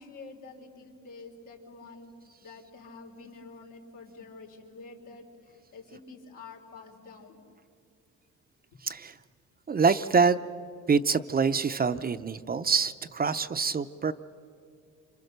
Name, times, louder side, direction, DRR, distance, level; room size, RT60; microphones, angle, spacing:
voice 1, 0.0-2.1 2.4-5.3 5.7-7.4, left 3 dB, 80° left, 1 dB, 3.7 m, -47 dB
voice 2, 8.8-9.2 9.7-10.4 10.9-14.1, right 5 dB, 30° right, 11 dB, 0.7 m, -25 dB
28.0 x 26.0 x 6.7 m, 2.4 s
cardioid pair, 90°, 30 cm